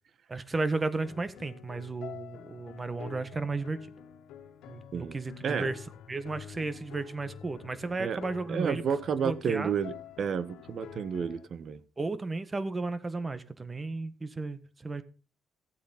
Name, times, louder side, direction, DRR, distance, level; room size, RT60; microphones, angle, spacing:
voice 1, 0.3-3.9 4.7-8.8 9.2-9.7 12.0-15.0, right 3 dB, 25° right, 13 dB, 1.6 m, -34 dB
sound 1, 1.0-11.5, left 8 dB, 85° left, 1.6 m, -48 dB
voice 2, 8.5-11.8, right 6 dB, 55° right, 15 dB, 1.3 m, -31 dB
15.5 x 8.4 x 5.6 m, 0.36 s
cardioid pair, 90°, 0 cm